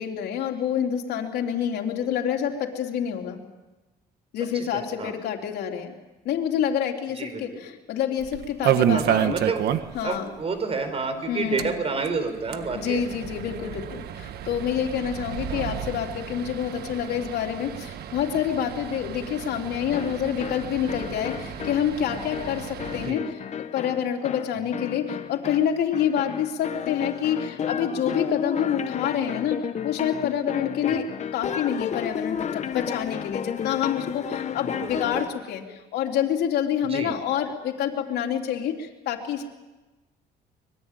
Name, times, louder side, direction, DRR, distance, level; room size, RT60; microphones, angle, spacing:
voice 1, 0.0-3.4 4.3-5.9 6.3-9.3 10.0-10.3 11.3-11.7 12.7-23.3 23.7-39.5, left 9 dB, 75° left, 2 dB, 3.6 m, -27 dB
voice 2, 4.5-5.2 7.2-7.5 8.9-9.6 10.0-13.0 15.5-15.8 22.9-23.2 30.9-31.0 34.6-35.2 36.8-37.1, right 4 dB, 35° right, 9 dB, 5.0 m, -30 dB
sound 1, 8.2-10.2 10.4-10.5 10.8-10.9 11.4-23.1, right 10 dB, 70° right, 1.5 m, -30 dB
sound 2, 19.9-35.4, left 8 dB, 40° left, 1.2 m, -32 dB
24.0 x 22.0 x 9.3 m, 1.1 s
cardioid pair, 110°, 17 cm